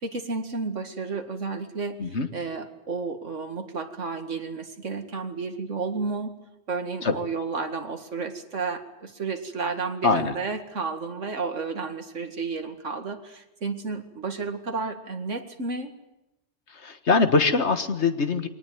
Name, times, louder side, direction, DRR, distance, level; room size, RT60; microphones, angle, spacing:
voice 1, 0.0-6.3 6.7-15.9, right 4 dB, 85° right, 6 dB, 2.4 m, -32 dB
voice 2, 10.0-10.3 16.7-18.5, left 4 dB, 65° left, 9 dB, 1.8 m, -23 dB
23.5 x 18.5 x 9.4 m, 0.92 s
omnidirectional pair, 1.2 m